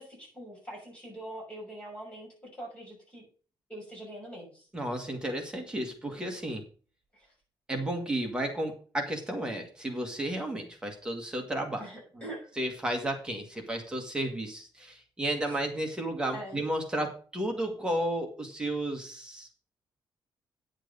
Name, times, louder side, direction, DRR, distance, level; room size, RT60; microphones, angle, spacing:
voice 1, 0.0-3.2 3.7-4.7 7.1-7.3 11.8-12.5 16.3-16.6, right 1 dB, 15° left, -3 dB, 6.1 m, -43 dB
voice 2, 4.7-6.6 7.7-11.9 12.1-19.5, right 1 dB, 10° right, 2 dB, 1.7 m, -33 dB
10.0 x 7.6 x 5.2 m, 0.39 s
cardioid pair, 180°, 9 cm